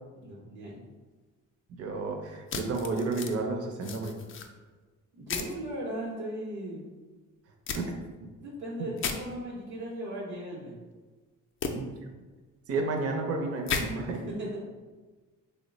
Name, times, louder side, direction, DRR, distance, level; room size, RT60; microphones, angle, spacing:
voice 1, 0.1-0.8 5.2-6.9 8.4-10.8 14.3-14.6, right 1 dB, 85° right, -5 dB, 0.8 m, -37 dB
voice 2, 1.8-4.2 7.7-7.9 11.7-11.9 12.7-14.2, right 3 dB, 50° right, 2 dB, 0.6 m, -31 dB
sound 1, 2.5-3.3 3.8-4.5 5.3-5.5 7.7-7.8 9.0-9.2 11.6-11.7 13.7-13.8, left 6 dB, 45° left, 0.4 m, -33 dB
3.0 x 2.1 x 3.9 m, 1.3 s
cardioid pair, 90°, 30 cm